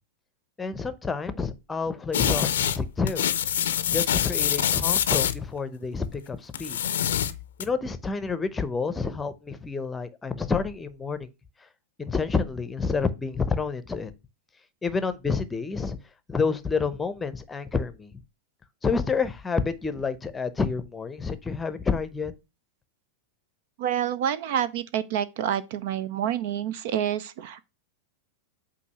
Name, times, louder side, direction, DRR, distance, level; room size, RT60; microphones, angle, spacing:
voice 1, 0.6-3.3 3.9-6.8 7.6-11.3 12.0-14.1 14.8-16.0 16.3-18.2 18.8-22.3, left 4 dB, 15° left, 0.8 m, -29 dB
sound 1, 2.1-2.8 3.1-5.4 6.5-7.7, left 10 dB, 65° left, 0.5 m, -25 dB
voice 2, 23.8-27.7, right 10 dB, 55° right, 0.5 m, -28 dB
8.2 x 2.7 x 5.6 m
figure-of-eight pair, 90°, 0 cm